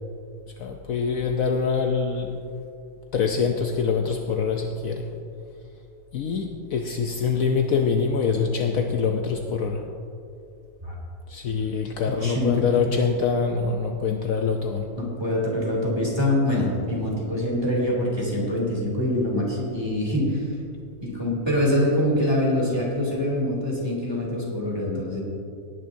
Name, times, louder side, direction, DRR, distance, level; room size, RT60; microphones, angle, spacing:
voice 1, 0.6-2.4 3.1-5.1 6.1-9.8 11.3-14.9, left 5 dB, 70° left, 3 dB, 1.1 m, -24 dB
voice 2, 12.2-12.6 15.0-20.5 21.0-25.2, left 1 dB, 15° right, -4 dB, 2.8 m, -24 dB
18.0 x 10.5 x 2.7 m, 2.5 s
omnidirectional pair, 1.6 m